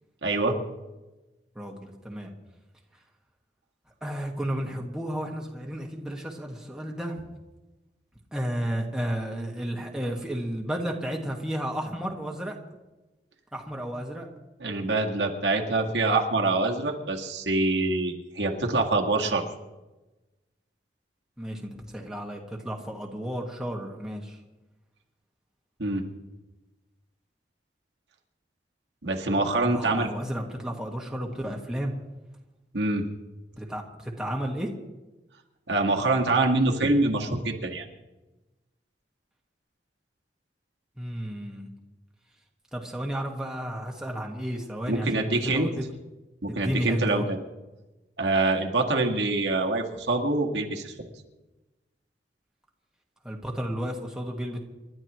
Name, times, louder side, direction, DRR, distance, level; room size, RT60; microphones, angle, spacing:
voice 1, 0.2-0.6 14.6-19.4 25.8-26.0 29.0-30.1 32.7-33.0 35.7-37.8 44.9-45.7 46.4-47.4 48.2-50.9, right 2 dB, 80° right, 1 dB, 1.8 m, -25 dB
voice 2, 1.5-2.3 4.0-7.2 8.3-12.6 13.5-14.3 21.4-24.4 29.5-31.9 33.5-34.7 41.0-41.7 42.7-45.8 46.5-47.2 53.2-54.6, equal, 5° right, -1 dB, 1.6 m, -32 dB
28.5 x 12.0 x 3.1 m, 1.1 s
head